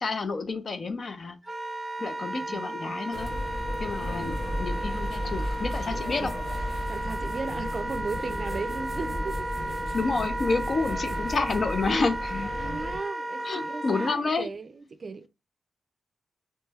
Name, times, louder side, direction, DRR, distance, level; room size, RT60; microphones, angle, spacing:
voice 1, 0.0-1.4 2.0-3.3 3.8-6.3 9.9-12.5 13.4-14.5, left 3 dB, 50° left, 0.5 m, -29 dB
Wind instrument woodwind instrument, 1.4-14.2, right 1 dB, 5° right, 0.8 m, -34 dB
voice 2, 2.5-3.1 4.2-4.8 6.0-6.5 6.9-9.8 11.0-11.3 12.6-15.3, right 4 dB, 45° right, 0.4 m, -37 dB
sound 1, 3.1-13.0, left 1 dB, 70° left, 1.0 m, -34 dB
sound 2, 5.5-12.7, left 1 dB, 35° left, 0.9 m, -46 dB
3.0 x 2.2 x 3.3 m
cardioid pair, 95°, 0 cm